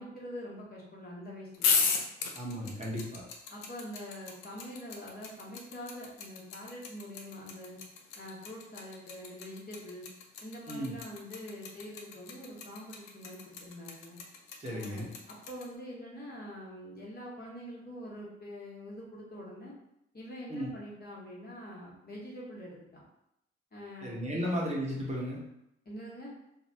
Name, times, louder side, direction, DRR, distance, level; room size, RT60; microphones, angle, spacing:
voice 1, 0.0-1.8 3.5-7.8 8.2-10.0 10.4-14.2 14.7-19.7 20.1-23.0 23.7-24.6 25.8-26.3, equal, 30° left, -5 dB, 1.4 m, -45 dB
sound 1, 1.5-15.6, left 5 dB, 75° left, 0.6 m, -34 dB
voice 2, 2.3-3.2 10.7-10.9 14.6-15.1 20.5-20.7 24.0-25.4, equal, 25° right, -4 dB, 1.1 m, -34 dB
2.7 x 2.5 x 3.5 m, 0.81 s
hypercardioid pair, 45°, 29 cm